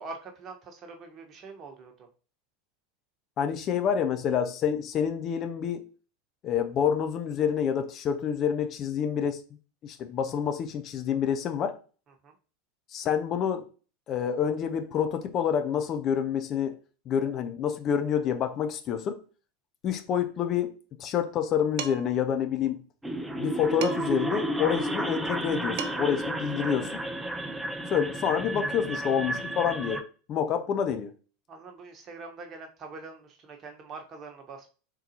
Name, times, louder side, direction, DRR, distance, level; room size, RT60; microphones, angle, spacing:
voice 1, 0.0-2.1 12.2-12.3 31.5-34.7, right 4 dB, 35° right, 1.1 m, -44 dB
voice 2, 3.4-5.8 6.4-9.4 9.8-11.7 12.9-13.7 14.1-16.8 17.1-19.2 19.8-22.8 23.4-27.0 27.9-30.0 30.3-31.1, left 8 dB, 40° left, 0.7 m, -28 dB
Dishes pots and pans, 21.8-22.2 23.8-24.3 25.4-25.5 25.8-26.2, right 8 dB, 55° right, 0.6 m, -37 dB
sound 1, 23.0-30.0, right 1 dB, 10° right, 0.6 m, -32 dB
4.5 x 3.8 x 2.8 m
figure-of-eight pair, 80°, 0 cm